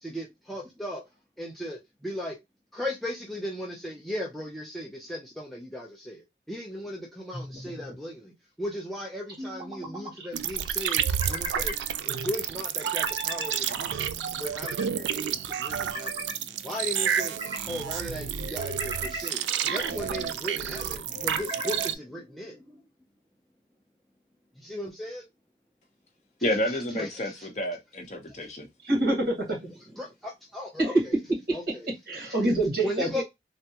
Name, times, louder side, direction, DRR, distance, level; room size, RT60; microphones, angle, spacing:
voice 1, 0.0-1.0 1.4-2.4 2.7-8.3 8.6-11.7 12.0-16.4 16.6-22.6 24.6-25.3 27.0-27.5 30.0-30.9 31.5-31.9 32.8-33.2, left 1 dB, ahead, 0.5 m, -37 dB
sound 1, 7.3-8.0 9.4-10.1 11.0-11.8 12.8-13.6 14.2-14.9 15.5-16.3 17.0-17.7 18.4-19.3 19.9-20.4 21.1-22.0, right 2 dB, 25° right, 1.0 m, -37 dB
sound 2, 10.3-22.0, right 9 dB, 90° right, 0.3 m, -30 dB
voice 2, 26.4-28.7, left 1 dB, 40° left, 0.8 m, -30 dB
voice 3, 28.8-30.0 30.8-31.0 31.5-33.2, right 2 dB, 55° right, 1.6 m, -26 dB
3.4 x 2.1 x 2.7 m
head